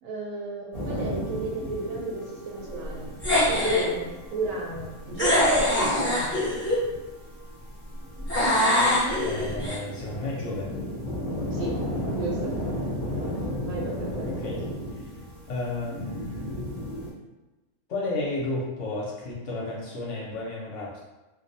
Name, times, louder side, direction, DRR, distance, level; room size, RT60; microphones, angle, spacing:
voice 1, 0.0-3.1 3.4-6.3 11.5-11.8 12.1-12.6 13.3-14.3, right 2 dB, 70° right, -2 dB, 0.9 m, -34 dB
sound 1, 0.7-17.1, equal, 40° right, 0.6 m, -35 dB
sound 2, 3.2-3.9 5.2-6.8 8.3-9.8, left 1 dB, 15° left, 0.4 m, -23 dB
voice 2, 9.2-10.7 14.2-14.6 14.9-15.1 15.5-16.7 17.9-21.0, left 2 dB, 65° left, -4 dB, 0.9 m, -32 dB
2.5 x 2.0 x 2.6 m, 1.1 s
omnidirectional pair, 1.5 m